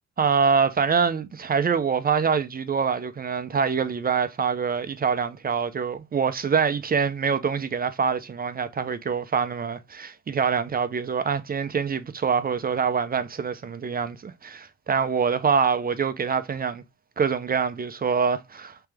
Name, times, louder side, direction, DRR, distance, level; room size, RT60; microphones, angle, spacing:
voice 1, 0.2-16.8 17.2-18.8, right 6 dB, 30° right, 0.6 m, -25 dB
3.4 x 3.3 x 3.3 m
cardioid pair, 90°, 30 cm